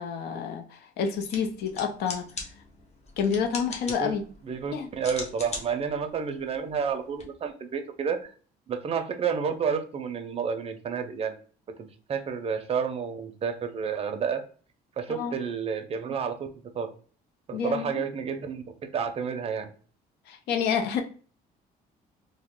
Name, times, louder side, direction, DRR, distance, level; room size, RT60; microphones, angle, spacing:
voice 1, 0.0-2.2 3.2-4.2 4.7-4.9 15.1-15.4 17.5-18.0 20.3-21.0, left 6 dB, 75° left, 0.6 m, -29 dB
sound 1, 1.1-7.2, left 3 dB, 40° left, 0.9 m, -42 dB
voice 2, 4.4-8.3 8.7-11.3 12.1-14.4 15.0-16.5 16.7-16.9 17.5-19.7, right 6 dB, 35° right, 0.5 m, -30 dB
2.9 x 2.1 x 3.6 m
cardioid pair, 110°, 17 cm